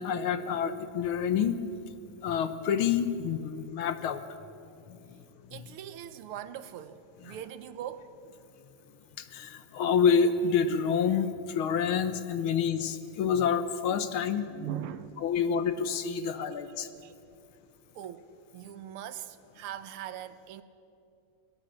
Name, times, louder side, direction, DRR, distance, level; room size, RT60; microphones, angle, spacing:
voice 1, 0.0-1.6 2.2-4.2 4.9-5.0 5.5-5.6 7.3-7.4 9.2-14.5 15.2-16.9, left 7 dB, 75° left, 1.8 m, -28 dB
voice 2, 5.5-8.1 13.9-14.2 14.5-15.2 16.4-16.5 16.8-17.1 18.0-20.6, right 10 dB, 85° right, 1.8 m, -41 dB
22.0 x 20.5 x 6.4 m
omnidirectional pair, 2.4 m